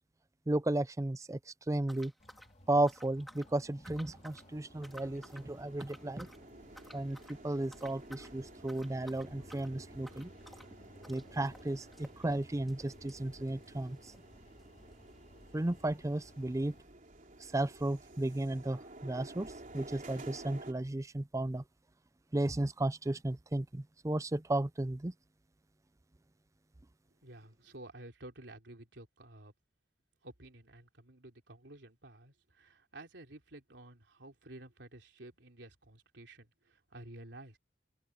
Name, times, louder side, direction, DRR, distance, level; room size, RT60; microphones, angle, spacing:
voice 1, 0.5-1.4 1.7-2.1 2.7-6.3 6.9-10.3 11.0-14.0 15.5-16.7 17.5-21.6 22.3-25.1, right 1 dB, 20° right, 0.5 m, -34 dB
sound 1, 1.8-3.5 3.8-4.5 4.8-5.5 5.8-6.4 6.7-7.4 7.7-8.3 8.6-14.3 14.6-14.7 14.9-15.0 15.6-15.7, equal, ahead, 4.1 m, -56 dB
sound 2, 2.2-16.8, left 1 dB, 40° left, 3.4 m, -59 dB
sound 3, 3.5-20.7, right 2 dB, 50° right, 3.6 m, -53 dB
voice 2, 27.2-29.5 30.2-37.6, right 1 dB, 75° right, 3.6 m, -52 dB
open air
head